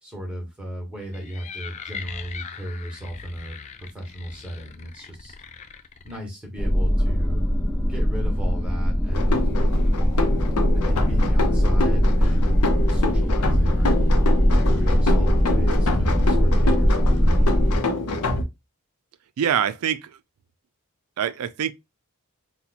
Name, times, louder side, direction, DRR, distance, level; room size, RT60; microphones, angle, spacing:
voice 1, 0.0-5.3 6.0-7.5 7.9-9.5 10.7-13.9 14.5-17.4, equal, 5° right, 1.2 m, -35 dB
sound 1, 1.0-6.2, left 6 dB, 30° left, 0.3 m, -40 dB
sound 2, 6.6-17.8, equal, 15° left, 0.8 m, -20 dB
sound 3, 9.1-18.4, left 2 dB, 85° left, 0.7 m, -26 dB
voice 2, 19.4-20.2 21.2-21.7, right 8 dB, 80° right, 0.4 m, -24 dB
2.8 x 2.2 x 4.1 m
head